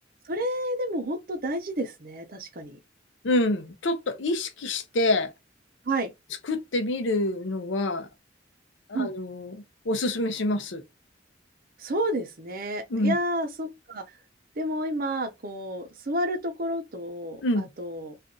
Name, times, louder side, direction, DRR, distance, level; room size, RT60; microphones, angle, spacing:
voice 1, 0.2-2.8 5.8-6.1 8.9-9.1 11.8-14.0 14.6-18.2, right 1 dB, 50° right, 0.7 m, -30 dB
voice 2, 3.2-5.3 6.5-8.1 8.9-10.8 12.9-13.1 17.4-17.7, left 1 dB, 75° left, 0.6 m, -27 dB
2.5 x 2.4 x 3.7 m
head